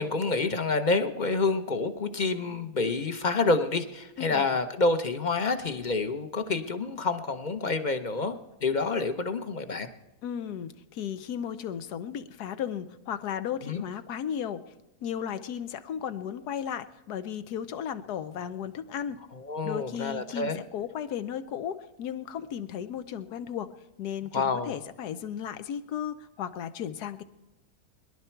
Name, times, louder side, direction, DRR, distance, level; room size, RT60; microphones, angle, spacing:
voice 1, 0.0-9.9 13.6-13.8 19.3-20.6 24.3-24.7, left 3 dB, 35° left, 9 dB, 0.8 m, -28 dB
voice 2, 10.2-14.6 15.0-19.2 19.6-23.7 24.0-27.2, left 9 dB, 80° left, 12 dB, 1.3 m, -35 dB
22.5 x 11.5 x 4.5 m, 0.99 s
omnidirectional pair, 1.7 m